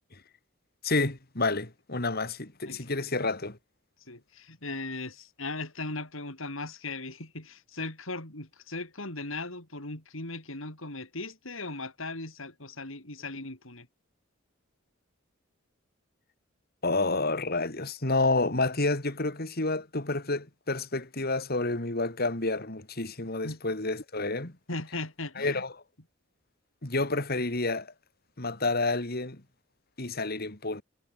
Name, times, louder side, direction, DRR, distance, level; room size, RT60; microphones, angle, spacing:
voice 1, 0.8-3.6 16.8-24.5 25.4-25.7 26.8-27.9 28.4-29.4 30.0-30.8, left 2 dB, 50° left, 3.0 m, -29 dB
voice 2, 4.1-13.9 23.4-23.6 24.7-25.6, left 2 dB, 75° left, 6.2 m, -38 dB
head